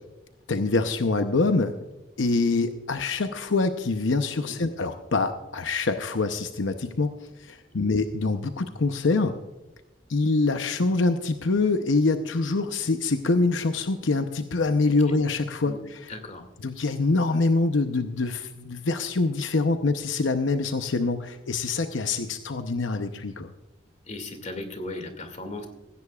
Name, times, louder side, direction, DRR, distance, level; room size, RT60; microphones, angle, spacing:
voice 1, 0.5-1.7 2.2-7.1 7.4-9.4 10.1-16.1 16.6-23.5, left 3 dB, 90° left, 8 dB, 0.8 m, -25 dB
voice 2, 16.1-16.5 24.1-25.7, left 2 dB, 40° left, 6 dB, 2.3 m, -37 dB
16.5 x 15.5 x 2.4 m, 1.0 s
head